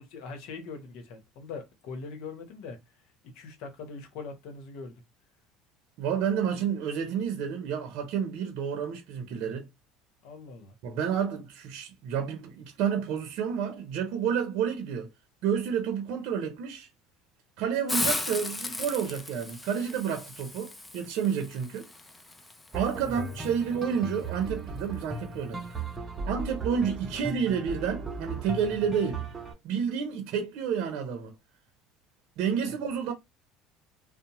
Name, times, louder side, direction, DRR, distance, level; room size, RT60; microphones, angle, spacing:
voice 1, 0.0-2.8 3.2-5.0 10.2-10.7 23.0-23.4 27.1-27.3 32.7-32.8, left 4 dB, 70° left, 0.9 m, -42 dB
voice 2, 6.0-9.6 10.8-15.1 15.4-16.9 17.6-21.9 22.7-25.6 26.2-29.2 29.6-31.3 32.4-33.1, right 7 dB, 70° right, 0.6 m, -30 dB
Hiss, 17.9-23.5, left 2 dB, 15° left, 0.4 m, -36 dB
sound 1, 22.7-29.5, right 3 dB, 20° right, 0.7 m, -37 dB
2.7 x 2.0 x 2.9 m
supercardioid pair, 105°, 0 cm